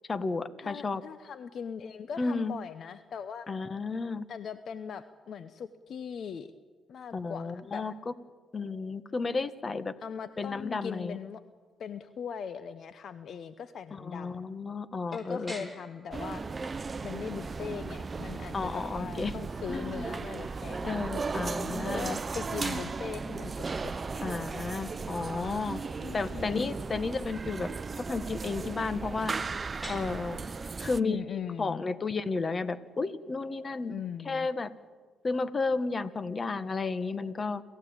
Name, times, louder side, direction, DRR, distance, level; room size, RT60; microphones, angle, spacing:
voice 1, 0.1-1.0 2.2-2.5 3.5-4.3 7.1-8.1 8.5-9.9 10.4-11.2 13.9-15.7 17.6-17.7 18.5-19.3 19.7-20.1 20.8-22.2 24.2-25.8 26.1-27.7 28.0-29.3 29.9-30.4 30.8-31.2 31.6-33.9 34.2-34.7 35.2-37.6, left 4 dB, 40° left, 14 dB, 1.5 m, -32 dB
voice 2, 0.6-3.5 4.3-6.5 6.9-7.9 10.0-11.4 11.8-14.4 15.1-16.4 17.0-21.1 21.8-24.3 26.0-26.7 31.0-31.9 33.9-34.5, left 7 dB, 60° left, 13 dB, 0.9 m, -40 dB
sound 1, 15.1-34.8, equal, 15° left, 5.1 m, -52 dB
sound 2, 16.1-31.0, right 4 dB, 35° right, 0.7 m, -36 dB
28.0 x 15.0 x 8.9 m, 1.5 s
supercardioid pair, 60°, 0 cm